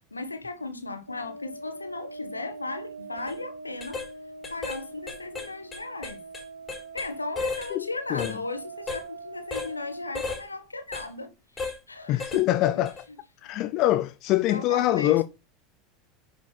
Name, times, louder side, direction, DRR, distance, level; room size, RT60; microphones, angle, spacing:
voice 1, 0.1-4.0 4.5-6.2 6.9-12.4 14.5-15.2, left 2 dB, 85° left, 1.4 m, -36 dB
sound 1, 1.1-10.1, right 2 dB, 85° right, 1.1 m, -43 dB
sound 2, 3.2-3.3 3.8-4.1 4.4-4.8 5.1-7.1 7.3-7.7 8.2-8.4 8.9-9.0 9.5-9.7 10.1-10.4 10.9-11.1 11.6-11.8 12.2-12.4 12.8-13.0, left 4 dB, 20° left, 3.7 m, -34 dB
voice 2, 7.7-8.4 12.1-13.0 13.4-15.2, left 15 dB, 45° left, 0.5 m, -24 dB
10.5 x 5.1 x 4.3 m
figure-of-eight pair, 75°, 0 cm